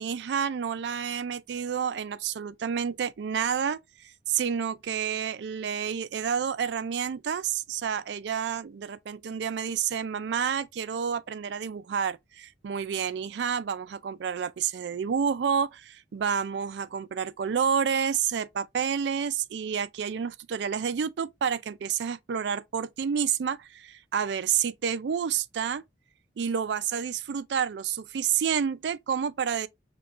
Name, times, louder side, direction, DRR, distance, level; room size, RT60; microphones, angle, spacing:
voice 1, 0.0-25.8 26.4-29.7, right 7 dB, 65° right, 0.4 m, -29 dB
5.1 x 3.0 x 2.4 m
head